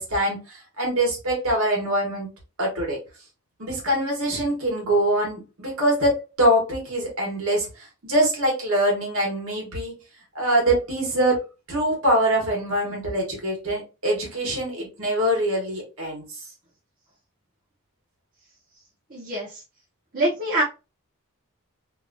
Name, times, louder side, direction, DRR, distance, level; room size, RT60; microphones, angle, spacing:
voice 1, 0.0-2.3 2.6-3.0 3.6-9.9 10.3-11.4 11.7-16.2, right 1 dB, 65° right, -1 dB, 1.3 m, -24 dB
voice 2, 19.1-19.6 20.1-20.6, right 1 dB, 40° right, -6 dB, 0.8 m, -24 dB
2.8 x 2.4 x 2.5 m, 0.29 s
head